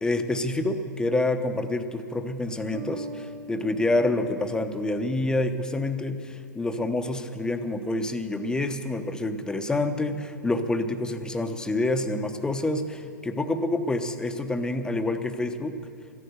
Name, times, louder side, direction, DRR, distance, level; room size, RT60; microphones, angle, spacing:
voice 1, 0.0-15.8, left 2 dB, 5° left, 8 dB, 0.8 m, -27 dB
sound 1, 2.7-6.1, right 2 dB, 30° right, 0.9 m, -42 dB
14.0 x 11.0 x 8.0 m, 2.8 s
hypercardioid pair, 105°, 10 cm